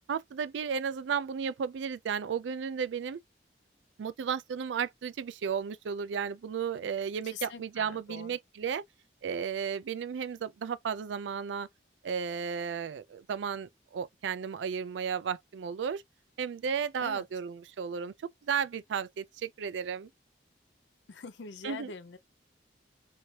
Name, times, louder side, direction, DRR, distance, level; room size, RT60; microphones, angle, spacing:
voice 1, 0.1-3.2 4.0-8.8 9.2-11.7 12.0-16.0 16.4-18.1 18.4-20.1 21.6-21.9, right 7 dB, 90° right, 0.4 m, -34 dB
voice 2, 7.2-8.4 17.0-17.3 21.1-22.2, left 5 dB, 85° left, 0.5 m, -43 dB
3.1 x 2.8 x 2.7 m
head